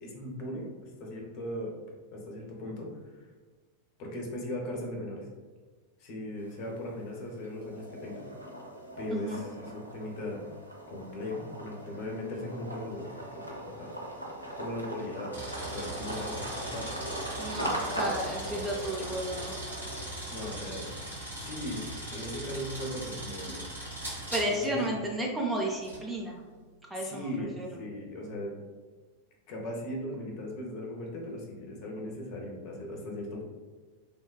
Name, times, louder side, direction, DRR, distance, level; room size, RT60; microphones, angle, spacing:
voice 1, 0.0-1.7 2.1-2.9 4.0-5.3 6.0-8.2 9.0-10.5 10.9-13.9 14.6-15.3 15.7-16.9 20.3-20.9 21.4-23.6 24.4-25.0 26.9-28.5 29.5-33.4, left 1 dB, 45° left, 0 dB, 0.6 m, -38 dB
sound 1, 6.4-7.0 7.4-20.9, right 1 dB, 90° left, 0.5 m, -40 dB
voice 2, 9.1-9.4 17.4-19.5 24.3-26.4 26.9-27.3 27.6-27.7, right 1 dB, 10° right, -2 dB, 0.4 m, -32 dB
sound 2, 15.3-24.9 25.8-26.0, right 1 dB, 85° right, 1.1 m, -40 dB
3.2 x 2.2 x 2.2 m, 1.4 s
figure-of-eight pair, 90°, 0 cm